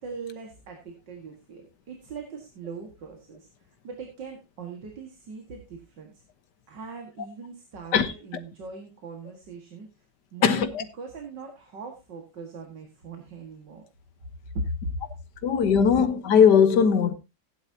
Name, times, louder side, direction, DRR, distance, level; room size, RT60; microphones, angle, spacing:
voice 1, 0.0-6.2 6.7-9.9 10.3-13.8 14.5-14.9, right 2 dB, 85° right, 2.5 m, -39 dB
voice 2, 10.4-10.8 15.4-17.1, left 7 dB, 75° left, 1.7 m, -19 dB
15.5 x 10.5 x 2.8 m
omnidirectional pair, 1.9 m